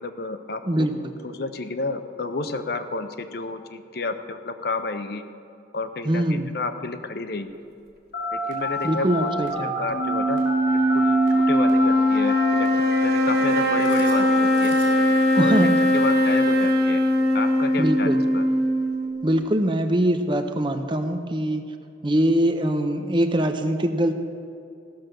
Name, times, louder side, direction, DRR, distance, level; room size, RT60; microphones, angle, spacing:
voice 1, 0.0-0.9 1.2-5.2 5.7-7.5 8.3-9.3 9.6-10.4 10.7-14.8 15.3-15.7 15.9-17.0 17.3-18.4, left 3 dB, 60° left, 9 dB, 0.6 m, -31 dB
voice 2, 0.6-1.1 6.0-6.5 8.8-9.8 15.4-15.7 17.8-18.2 19.2-21.6 22.0-24.1, right 1 dB, 25° right, 7 dB, 0.6 m, -23 dB
Telephone, 8.1-15.0, equal, 85° left, 3.4 m, -30 dB
sound 1, 9.9-19.3, left 1 dB, 55° right, 1.3 m, -20 dB
15.0 x 6.1 x 6.6 m, 2.6 s
head